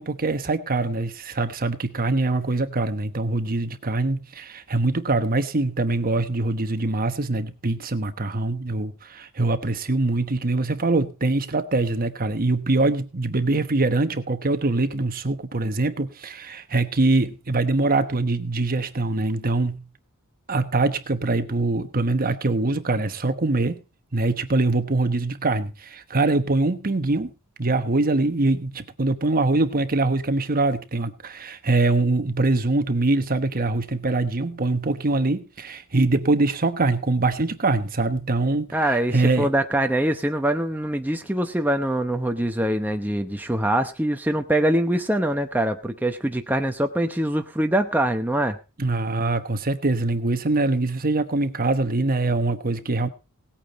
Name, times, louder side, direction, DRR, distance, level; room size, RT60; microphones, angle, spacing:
voice 1, 0.0-19.8 20.5-23.8 24.1-27.3 27.6-38.7 39.1-39.5 48.8-53.1, right 2 dB, 40° right, 1.1 m, -23 dB
voice 2, 38.7-48.6, right 1 dB, 10° right, 0.8 m, -23 dB
18.0 x 8.8 x 4.1 m
head